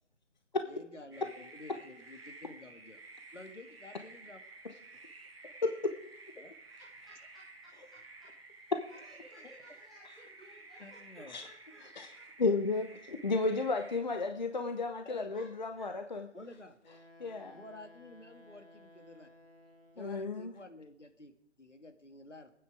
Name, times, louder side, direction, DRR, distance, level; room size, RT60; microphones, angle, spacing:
voice 1, 0.6-3.0 3.3-4.4 6.4-6.5 9.4-9.5 10.8-11.4 15.0-15.3 16.3-16.8 17.5-19.3 20.0-22.5, left 2 dB, 75° left, 6 dB, 2.2 m, -51 dB
sound 1, 1.1-14.0, right 3 dB, 55° right, 2.0 m, -53 dB
voice 2, 6.8-12.2 15.3-15.5 15.8-16.2, equal, ahead, -9 dB, 1.0 m, -59 dB
voice 3, 12.4-16.3 17.2-17.6 20.0-20.5, left 3 dB, 40° left, 7 dB, 0.9 m, -33 dB
Wind instrument woodwind instrument, 16.8-20.3, left 1 dB, 60° left, 3.9 m, -58 dB
23.0 x 9.3 x 4.8 m, 0.76 s
figure-of-eight pair, 155°, 36 cm